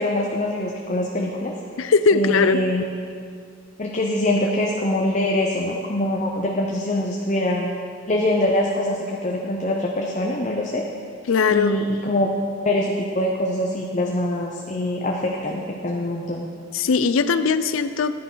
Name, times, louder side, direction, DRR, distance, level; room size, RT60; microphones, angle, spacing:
voice 1, 0.0-1.5 2.1-2.8 3.8-7.7 8.1-10.8 11.5-12.3 12.6-16.4, left 1 dB, 35° left, 0 dB, 0.7 m, -24 dB
voice 2, 1.8-2.6 11.3-11.8 16.7-18.2, left 4 dB, 75° left, 12 dB, 0.4 m, -19 dB
10.5 x 10.0 x 3.9 m, 2.3 s
head